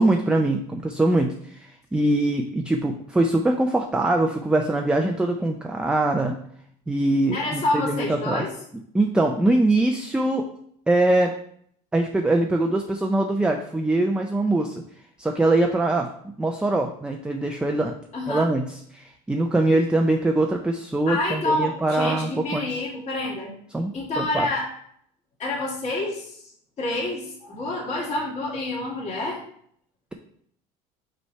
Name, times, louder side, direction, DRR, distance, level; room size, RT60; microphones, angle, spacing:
voice 1, 0.0-6.3 6.9-8.5 8.9-10.5 10.9-11.3 11.9-14.8 15.2-16.1 16.4-17.9 18.3-22.7 23.7-24.5, right 2 dB, 5° right, 3 dB, 0.4 m, -22 dB
voice 2, 7.3-8.5 18.1-18.5 21.1-23.5 23.9-24.7 25.4-26.4 26.8-29.4, left 2 dB, 40° left, -3 dB, 2.1 m, -28 dB
5.4 x 3.2 x 5.5 m, 0.65 s
cardioid pair, 125°, 17 cm